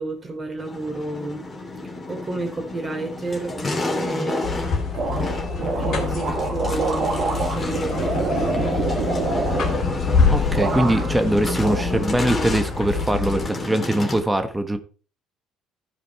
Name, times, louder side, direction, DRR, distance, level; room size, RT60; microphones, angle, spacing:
voice 1, 0.0-1.4 1.8-4.4 5.6-8.7, right 2 dB, 30° right, 3.2 m, -31 dB
sound 1, 0.6-14.2, left 2 dB, 30° left, 2.7 m, -30 dB
sound 2, 4.4-13.5, left 5 dB, 55° left, 2.9 m, -26 dB
sound 3, 4.9-10.2 10.5-11.3 11.6-12.5, right 4 dB, 55° right, 2.3 m, -27 dB
voice 2, 10.3-14.8, right 1 dB, 10° right, 1.3 m, -22 dB
14.0 x 5.1 x 4.3 m
hypercardioid pair, 65°, 0 cm